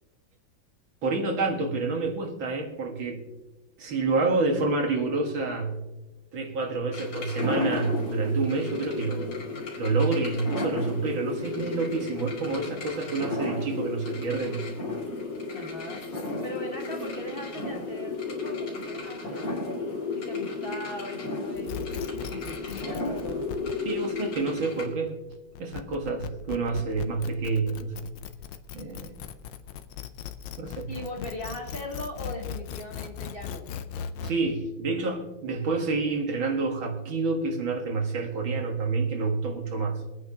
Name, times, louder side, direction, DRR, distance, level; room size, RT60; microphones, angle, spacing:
voice 1, 1.0-3.2 3.8-5.8 6.3-9.4 9.8-14.7 23.9-25.2 25.6-28.1 28.7-29.2 30.6-30.9 34.2-40.0, right 3 dB, 75° right, 2 dB, 2.4 m, -28 dB
sound 1, 6.9-24.9, left 3 dB, 65° left, 3.0 m, -33 dB
voice 2, 15.5-19.5 20.1-23.5 30.9-33.7, left 1 dB, 30° left, 0 dB, 1.5 m, -39 dB
sound 2, 21.6-34.3, left 8 dB, 85° left, 1.6 m, -38 dB
24.0 x 9.1 x 2.8 m, 1.1 s
omnidirectional pair, 2.2 m